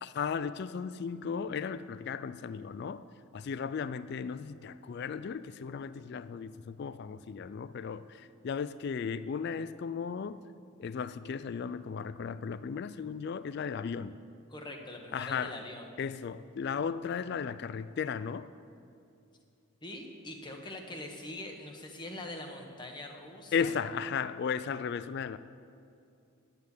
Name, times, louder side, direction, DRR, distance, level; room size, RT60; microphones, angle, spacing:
voice 1, 0.0-3.1 3.3-10.4 10.8-14.1 15.1-15.6 16.0-18.5 23.5-25.4, left 6 dB, 50° left, 0.3 m, -35 dB
voice 2, 14.5-15.9 19.8-23.7, left 1 dB, 20° left, 1.2 m, -43 dB
11.5 x 8.4 x 8.3 m
head